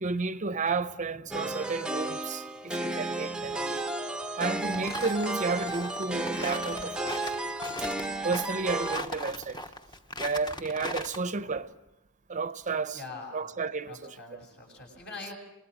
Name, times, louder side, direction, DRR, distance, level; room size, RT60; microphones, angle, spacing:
voice 1, 0.0-3.8 4.4-7.2 8.2-9.6 10.2-11.7 12.3-13.0 13.3-14.1, right 4 dB, 35° right, 0.7 m, -32 dB
voice 2, 1.0-1.6 3.3-3.7 11.4-11.6 12.9-13.5 13.9-15.3, left 3 dB, 50° left, 6.8 m, -45 dB
sound 1, 1.3-9.0, right 2 dB, 5° right, 0.7 m, -33 dB
sound 2, 4.5-11.2, left 1 dB, 20° left, 1.0 m, -39 dB
27.5 x 20.0 x 6.4 m
head